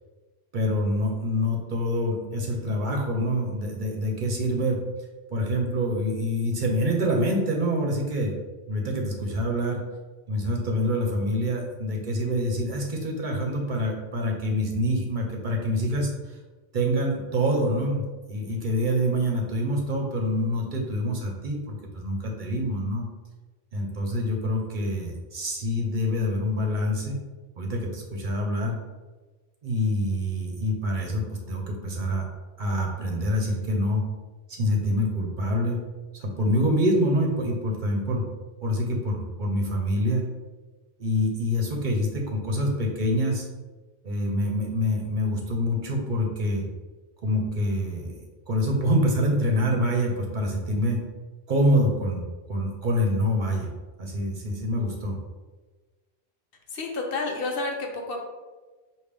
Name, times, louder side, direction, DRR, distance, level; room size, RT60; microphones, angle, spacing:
voice 1, 0.5-4.8 5.3-8.3 8.7-9.8 10.3-16.4 16.7-23.0 23.7-27.2 27.6-28.8 29.6-32.2 32.6-34.0 34.5-35.8 36.2-38.2 38.6-40.2 41.0-43.5 44.0-46.6 47.2-51.0 51.5-52.2 52.5-53.7 54.0-55.2, equal, 55° right, 0 dB, 0.8 m, -26 dB
voice 2, 56.7-58.2, left 3 dB, 65° left, 2 dB, 0.9 m, -30 dB
5.0 x 2.5 x 3.3 m, 1.3 s
omnidirectional pair, 1.1 m